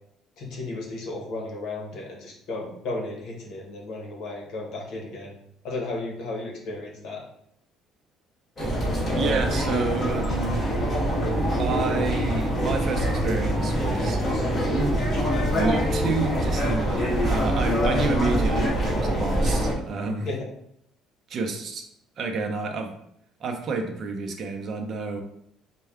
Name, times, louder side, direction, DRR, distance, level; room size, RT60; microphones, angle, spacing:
voice 1, 0.4-5.3 5.6-7.2 20.2-20.4, left 2 dB, 65° left, 0 dB, 1.1 m, -34 dB
sound 1, 8.6-19.7, equal, 30° left, 1.3 m, -24 dB
voice 2, 9.2-10.6 11.6-14.2 14.7-20.3 21.3-21.9 22.2-22.9 23.4-25.2, right 3 dB, 45° right, 3 dB, 0.6 m, -29 dB
4.4 x 2.2 x 3.5 m, 0.73 s
cardioid pair, 135°, 0 cm